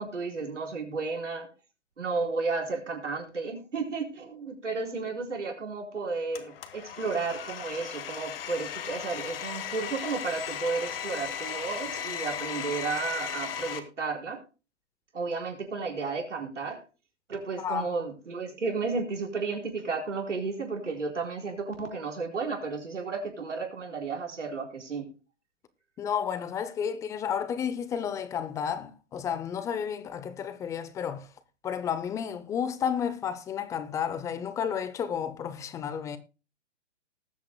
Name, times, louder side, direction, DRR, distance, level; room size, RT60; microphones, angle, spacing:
voice 1, 0.0-1.5 2.0-14.4 15.1-16.8 17.3-25.1, right 4 dB, 85° right, 4.4 m, -33 dB
Domestic sounds home sounds, 6.3-13.8, left 8 dB, 55° left, 1.8 m, -36 dB
voice 2, 26.0-31.3 31.6-36.2, left 8 dB, 10° left, 0.5 m, -32 dB
19.5 x 8.4 x 2.2 m
hypercardioid pair, 130°, 35 cm